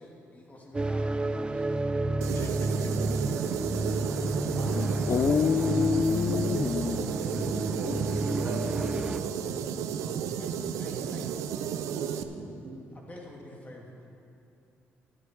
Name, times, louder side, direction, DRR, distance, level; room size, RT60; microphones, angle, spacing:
voice 1, 0.0-1.8 4.5-6.2 10.0-11.5 12.9-13.9, left 1 dB, 30° left, -2 dB, 2.5 m, -47 dB
sound 1, 0.7-9.2, right 2 dB, 20° right, 0.4 m, -31 dB
sound 2, 2.2-12.2, right 8 dB, 80° right, 0.5 m, -33 dB
voice 2, 2.3-2.9 4.7-7.1, left 7 dB, 50° left, 11 dB, 0.3 m, -28 dB
voice 3, 3.4-4.3 7.1-9.7 12.2-12.8, right 3 dB, 65° right, 1 dB, 1.5 m, -37 dB
12.5 x 9.7 x 4.5 m, 2.8 s
supercardioid pair, 65°, 5 cm